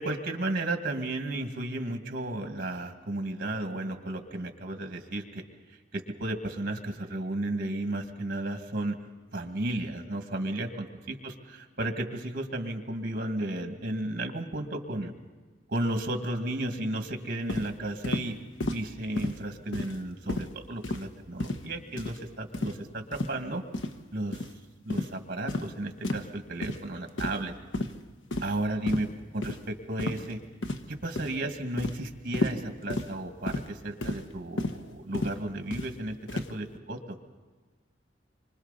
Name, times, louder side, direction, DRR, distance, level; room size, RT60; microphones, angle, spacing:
voice 1, 0.0-5.4 5.9-9.1 9.3-15.1 15.7-18.4 18.7-23.6 24.1-24.4 24.8-27.5 28.4-30.4 30.9-37.2, right 1 dB, 50° right, 5 dB, 2.1 m, -33 dB
sound 1, 17.5-17.7 18.0-18.3 18.6-18.8 19.2-19.4 19.7-20.0 20.3-20.5 20.8-21.1 21.4-21.6 22.0-22.2 22.5-22.8 23.1-23.3 23.7-23.9 24.3-24.5 24.9-25.1 25.5-25.7 26.0-26.3 26.6-26.8 27.2-27.5 27.7-27.9 28.3-28.6 28.9-29.1 29.4-29.6 30.0-30.3 30.6-30.9 31.2-31.4 31.8-32.0 32.3-32.6 32.9-33.1 33.5-33.7 34.0-34.2 34.6-34.8 35.1-35.3 35.7-35.9 36.3-36.5, left 2 dB, 80° left, 1.1 m, -32 dB
27.0 x 24.5 x 4.2 m, 1.4 s
head